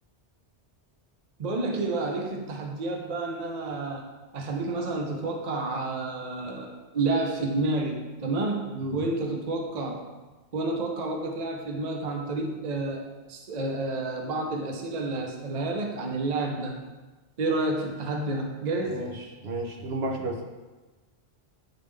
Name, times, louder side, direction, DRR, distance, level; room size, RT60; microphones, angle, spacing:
voice 1, 1.4-4.0 4.3-8.7 8.9-10.0 10.5-16.8 17.4-19.0, right 2 dB, 45° right, 2 dB, 0.7 m, -30 dB
voice 2, 8.7-9.0 18.9-20.4, right 2 dB, 70° right, 0 dB, 1.1 m, -32 dB
8.9 x 3.5 x 3.3 m, 1.2 s
omnidirectional pair, 1.1 m